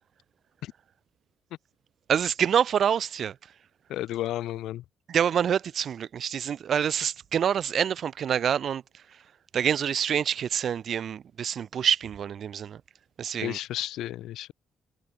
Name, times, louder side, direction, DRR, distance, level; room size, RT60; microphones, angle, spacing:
voice 1, 2.1-3.4 5.1-9.0 9.5-12.8 13.2-13.6, right 8 dB, 50° right, 1.5 m, -26 dB
voice 2, 3.9-4.8 13.4-14.5, left 14 dB, 80° left, 4.8 m, -32 dB
cardioid pair, 135°, 0 cm